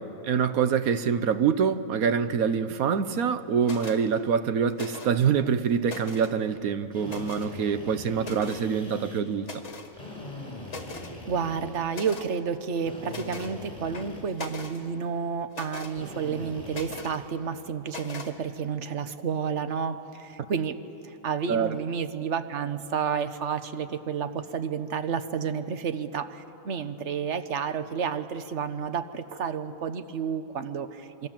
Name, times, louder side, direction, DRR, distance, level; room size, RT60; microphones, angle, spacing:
voice 1, 0.0-9.5 21.5-21.8, right 7 dB, 75° right, 1.3 m, -25 dB
sound 1, 3.6-4.0 4.7-5.3 5.7-6.3 7.0-7.6 8.2-8.7 9.4-9.9 10.3-10.4 10.7-11.1 11.9-12.3 13.1-13.5 13.9-14.8 15.5-15.9 16.7-17.2 17.9-18.3, left 3 dB, 50° left, 2.1 m, -40 dB
Drill, 6.9-9.2 9.9-12.2 12.8-14.7 15.9-17.3, left 1 dB, 25° left, 6.0 m, -43 dB
voice 2, 11.2-20.8 21.0-31.3, right 6 dB, 55° right, 1.3 m, -31 dB
27.5 x 23.5 x 7.5 m
omnidirectional pair, 1.5 m